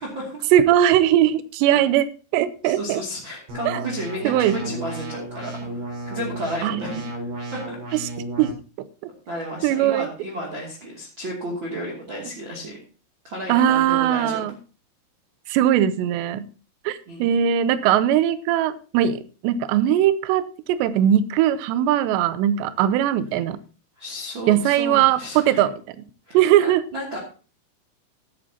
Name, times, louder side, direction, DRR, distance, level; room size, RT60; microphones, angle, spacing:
voice 1, 0.0-0.5 1.7-1.8 2.6-7.2 7.5-7.8 9.3-12.8 13.2-14.5 17.1-17.4 24.0-25.6 26.3-27.2, equal, 35° right, -2 dB, 2.3 m, -33 dB
voice 2, 0.5-2.1 2.3-3.0 3.7-3.8 4.2-4.5 6.6-7.0 8.4-8.5 9.0-9.1 9.6-10.1 13.5-14.5 15.5-16.5 16.9-23.6 24.5-26.0 26.3-26.8, right 11 dB, 85° right, 13 dB, 2.5 m, -20 dB
sound 1, 3.5-8.5, right 1 dB, 65° right, 7.2 m, -33 dB
14.0 x 11.5 x 2.9 m, 0.36 s
omnidirectional pair, 5.7 m